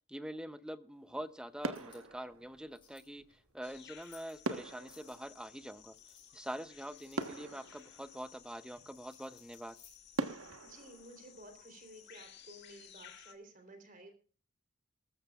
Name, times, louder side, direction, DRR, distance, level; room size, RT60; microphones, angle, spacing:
voice 1, 0.1-5.9 6.3-9.8, equal, 5° right, 13 dB, 0.6 m, -45 dB
sound 1, 1.0-1.3 1.6-3.1 4.4-6.4 6.8-6.9 7.2-8.7 9.3-9.4 10.2-12.1 12.4-12.6, right 2 dB, 75° right, 1.3 m, -42 dB
sound 2, 1.6-10.5, left 6 dB, 25° left, 6.1 m, -66 dB
sound 3, 3.6-13.3, left 9 dB, 55° left, 1.6 m, -58 dB
voice 2, 10.6-14.1, right 1 dB, 40° right, 6 dB, 3.6 m, -54 dB
20.5 x 14.0 x 2.4 m, 0.39 s
head